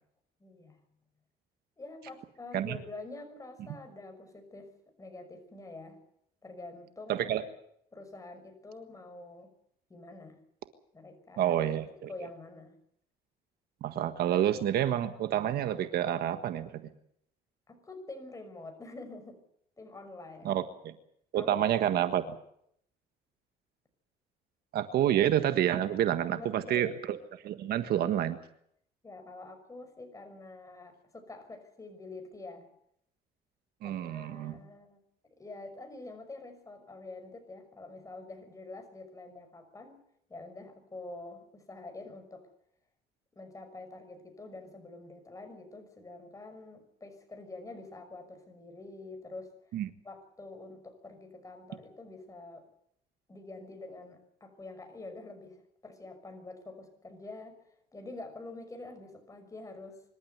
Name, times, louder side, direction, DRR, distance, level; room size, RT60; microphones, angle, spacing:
voice 1, 0.4-0.8 1.8-4.7 5.0-6.0 6.4-7.3 7.9-9.5 9.9-10.4 10.9-11.6 12.1-12.8 17.7-19.4 19.8-20.7 21.3-21.7 26.3-26.9 27.9-28.3 29.0-32.7 33.8-35.0 35.4-40.0 40.3-42.5 43.4-49.5 50.0-52.7 53.3-57.6 57.9-60.0, left 2 dB, 20° left, 6 dB, 6.1 m, -46 dB
voice 2, 7.1-7.4 11.4-11.9 13.8-16.7 20.4-20.6 21.3-22.2 24.7-27.2 27.4-28.4 33.8-34.6 49.7-49.9, right 11 dB, 70° right, 9 dB, 1.6 m, -28 dB
25.5 x 13.0 x 9.6 m, 0.72 s
cardioid pair, 110°, 17 cm